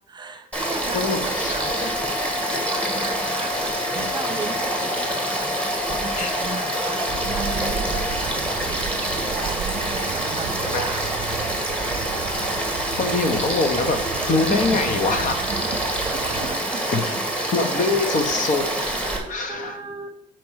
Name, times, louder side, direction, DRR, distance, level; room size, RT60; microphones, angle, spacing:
voice 1, 0.1-5.0 5.9-8.9 9.2-11.5 14.5-14.9 15.5-15.8 16.1-17.0 17.6-18.0 19.0-20.1, right 4 dB, 25° right, 6 dB, 0.9 m, -36 dB
Frog / Stream, 0.5-19.2, right 1 dB, 5° left, 1.8 m, -26 dB
voice 2, 0.9-1.5 3.2-3.3 6.1-6.3 10.6-10.9 13.0-15.4 16.9-17.2 17.5-19.0 19.3-19.8, left 3 dB, 50° left, 7 dB, 1.2 m, -24 dB
sound 1, 1.6-8.2, left 8 dB, 30° left, 0.8 m, -33 dB
sound 2, 7.1-16.6, right 8 dB, 50° right, 0.5 m, -34 dB
6.0 x 4.6 x 6.4 m, 0.80 s
cardioid pair, 110°, 17 cm